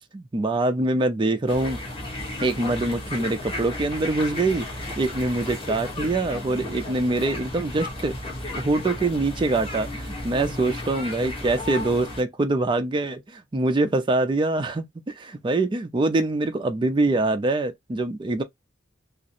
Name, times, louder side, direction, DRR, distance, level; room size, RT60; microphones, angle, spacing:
voice 1, 0.1-1.8 2.4-4.7 5.0-8.2 8.5-18.4, right 2 dB, 25° right, 0.4 m, -24 dB
sound 1, 1.5-12.2, left 1 dB, 30° left, 1.0 m, -34 dB
2.4 x 2.0 x 2.6 m
head